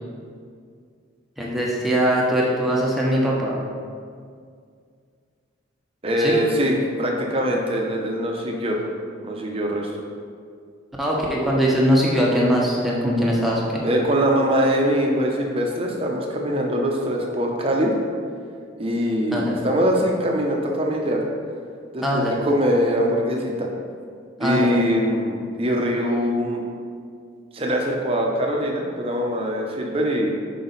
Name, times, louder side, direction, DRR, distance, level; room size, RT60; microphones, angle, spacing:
voice 1, 1.4-3.5 6.2-6.4 11.0-13.8 19.3-19.5 22.0-22.4 24.4-24.7, equal, ahead, -5 dB, 0.9 m, -21 dB
voice 2, 6.0-6.7 7.0-8.8 9.2-9.9 13.8-17.9 18.8-21.2 21.9-23.7 24.4-26.6 27.5-30.3, equal, 30° right, 0 dB, 0.7 m, -22 dB
6.1 x 5.0 x 4.0 m, 2.2 s
head